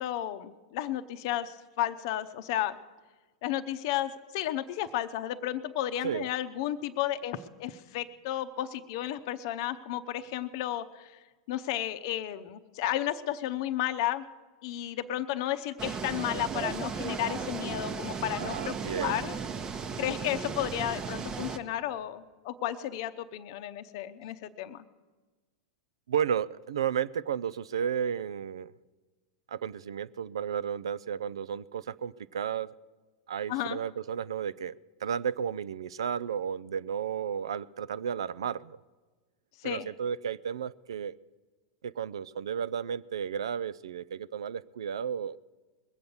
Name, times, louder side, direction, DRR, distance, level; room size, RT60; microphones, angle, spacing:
voice 1, 0.0-2.8 3.4-11.1 11.5-14.2 14.6-19.3 20.0-24.9 33.5-33.8 39.6-39.9, left 12 dB, 55° left, 10 dB, 0.7 m, -33 dB
sound 1, 15.8-21.6, right 5 dB, 25° right, 0.9 m, -35 dB
voice 2, 18.4-19.3 26.1-28.7 29.5-32.7 33.3-34.8 35.0-38.8 39.6-41.2 41.8-45.4, right 8 dB, 75° right, 18 dB, 0.4 m, -33 dB
21.0 x 7.8 x 7.0 m, 1.3 s
figure-of-eight pair, 95°, 3 cm